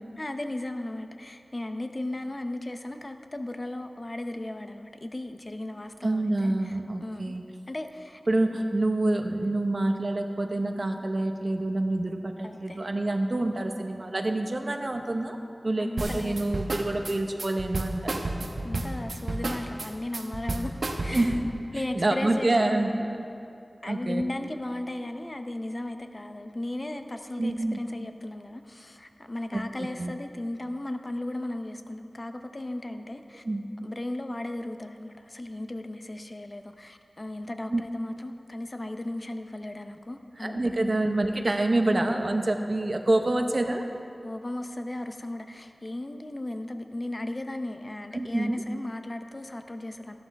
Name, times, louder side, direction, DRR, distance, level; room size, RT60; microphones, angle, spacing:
voice 1, 0.2-7.4 7.7-8.2 12.4-12.9 15.8-16.4 18.6-20.7 21.0-21.4 21.7-22.5 23.8-33.4 33.8-40.6 44.2-50.1, left 1 dB, 35° left, 7 dB, 0.7 m, -36 dB
voice 2, 6.0-7.4 8.3-15.4 15.6-18.5 21.1-21.5 21.9-23.2 23.8-24.2 27.4-27.8 29.5-30.1 33.4-33.7 37.7-37.8 40.4-43.8 48.1-48.6, right 2 dB, 50° right, 5 dB, 0.8 m, -27 dB
sound 1, 16.0-21.5, right 2 dB, 75° right, 0.9 m, -31 dB
14.0 x 11.5 x 3.5 m, 2.6 s
wide cardioid pair, 75°, 0 cm